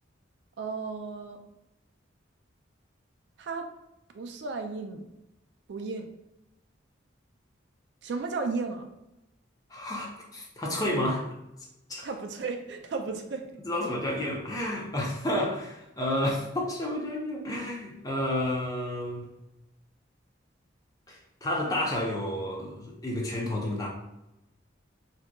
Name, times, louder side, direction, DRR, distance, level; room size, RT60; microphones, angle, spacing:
voice 1, 0.6-1.4 3.4-3.7 4.1-5.1 5.7-6.1 8.0-8.9 12.0-13.4, right 4 dB, 60° right, 5 dB, 0.3 m, -34 dB
voice 2, 9.7-11.2 11.9-12.1 13.6-19.3 21.1-23.9, left 1 dB, 20° left, -2 dB, 0.5 m, -30 dB
3.5 x 2.7 x 2.2 m, 0.89 s
head